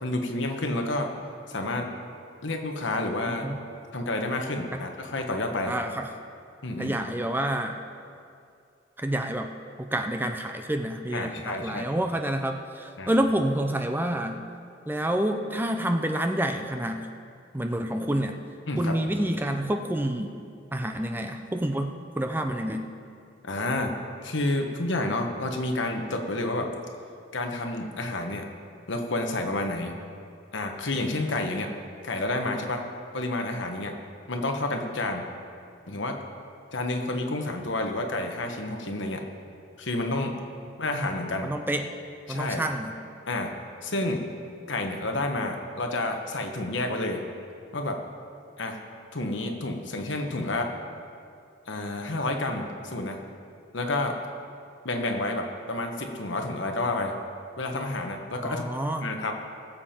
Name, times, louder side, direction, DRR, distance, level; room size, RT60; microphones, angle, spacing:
voice 1, 0.0-1.1 1.5-1.9 2.4-3.5 3.9-5.8 6.6-7.0 11.1-11.9 13.0-13.1 18.7-19.0 23.4-23.9 24.2-26.7 27.3-28.5 28.9-29.9 30.5-31.7 32.0-32.8 33.1-33.9 34.3-35.2 35.9-36.2 36.7-39.2 39.8-40.4 40.8-41.5 42.3-42.6 43.3-43.5 43.8-44.2 44.7-47.2 47.7-48.0 48.6-48.8 49.1-50.7 51.7-53.2 53.7-54.2 54.8-57.2 57.6-58.6 59.0-59.3, left 2 dB, 65° left, 3 dB, 1.2 m, -29 dB
voice 2, 3.3-3.6 4.7-4.8 5.6-6.1 6.8-7.8 9.0-9.5 9.8-14.4 14.9-17.1 17.5-18.3 18.8-20.4 20.7-22.9 41.0-41.1 41.4-41.9 42.3-42.9 58.4-59.1, right 1 dB, 10° right, 5 dB, 0.5 m, -28 dB
20.0 x 7.5 x 4.4 m, 2.4 s
head